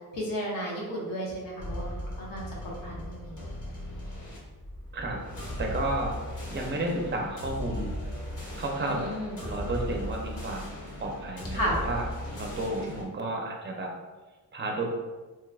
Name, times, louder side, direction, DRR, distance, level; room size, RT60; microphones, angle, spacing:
voice 1, 0.1-3.4 6.7-6.9 8.8-9.4 11.5-11.8, equal, 80° left, -3 dB, 1.1 m, -34 dB
sound 1, 1.6-13.0, equal, 65° left, 1.3 m, -37 dB
voice 2, 5.6-6.2 6.5-7.9 8.6-9.1 9.4-10.7 11.0-13.9 14.5-14.9, right 2 dB, 35° right, 1 dB, 0.6 m, -32 dB
3.6 x 3.0 x 2.3 m, 1.2 s
cardioid pair, 115°, 33 cm